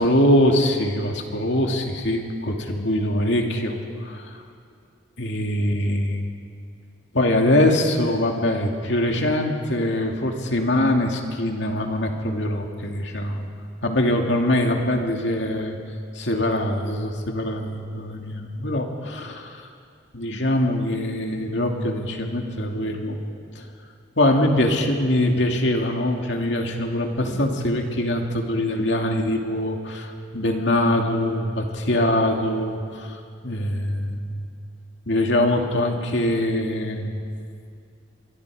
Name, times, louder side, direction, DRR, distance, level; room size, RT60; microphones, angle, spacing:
voice 1, 0.0-4.4 5.2-6.3 7.1-13.5 13.8-15.8 16.1-19.7 20.1-23.2 23.5-23.6 24.2-34.5 35.1-37.2, left 1 dB, 70° left, 2 dB, 2.6 m, -23 dB
26.5 x 23.0 x 5.0 m, 2.4 s
head